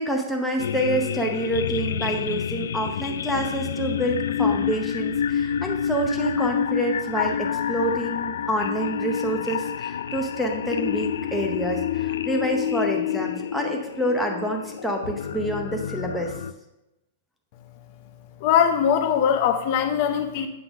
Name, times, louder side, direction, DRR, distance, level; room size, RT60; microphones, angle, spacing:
voice 1, 0.0-16.3, right 1 dB, ahead, 1 dB, 0.7 m, -27 dB
sound 1, 0.6-16.5, left 8 dB, 90° left, 0.3 m, -28 dB
voice 2, 18.4-20.5, left 8 dB, 40° left, 6 dB, 0.7 m, -21 dB
8.0 x 3.8 x 5.9 m, 0.95 s
hypercardioid pair, 165°, 0 cm